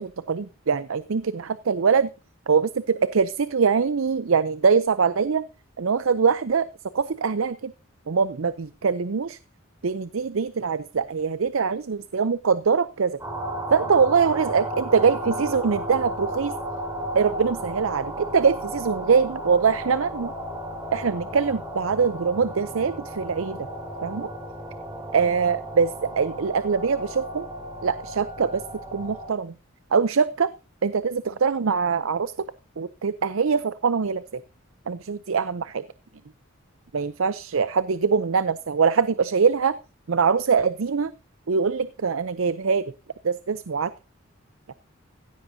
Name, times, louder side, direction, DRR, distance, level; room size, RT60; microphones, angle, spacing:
voice 1, 0.0-2.1 2.5-5.4 5.8-6.7 6.9-7.7 8.1-9.4 9.8-13.2 13.7-16.5 17.1-20.3 20.9-23.7 24.0-24.3 25.1-27.5 27.8-28.6 28.9-29.5 29.9-30.5 30.8-32.3 32.8-34.4 34.9-35.8 36.9-39.8 40.1-41.1 41.5-42.9 43.2-43.9, right 5 dB, 80° right, 15 dB, 0.6 m, -23 dB
sound 1, 13.2-29.3, right 1 dB, 15° right, 5.2 m, -34 dB
16.0 x 13.5 x 2.7 m, 0.31 s
head